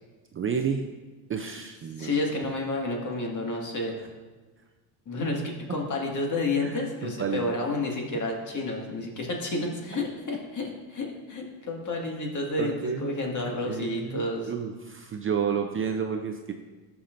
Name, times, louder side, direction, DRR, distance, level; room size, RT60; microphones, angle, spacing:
voice 1, 0.3-0.8 1.3-2.2 6.6-7.6 12.6-13.1 13.4-16.5, right 7 dB, 30° right, 5 dB, 0.5 m, -31 dB
voice 2, 2.0-3.9 5.1-14.5, left 2 dB, 40° left, 0 dB, 2.0 m, -30 dB
14.0 x 5.9 x 2.6 m, 1.3 s
supercardioid pair, 90°, 47 cm